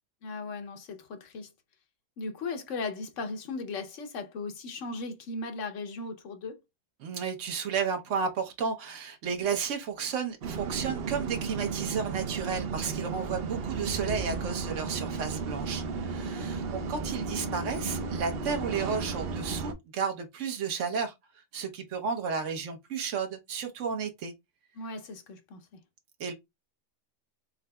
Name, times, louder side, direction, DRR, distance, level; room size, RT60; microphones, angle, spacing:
voice 1, 0.2-1.5 2.2-6.6 16.5-16.9 24.7-25.8, left 3 dB, 80° left, 1.1 m, -37 dB
voice 2, 7.0-24.3 26.2-26.3, right 6 dB, 75° right, 1.2 m, -33 dB
sound 1, 10.4-19.7, right 4 dB, 60° right, 0.8 m, -34 dB
3.9 x 3.8 x 2.2 m
omnidirectional pair, 1.3 m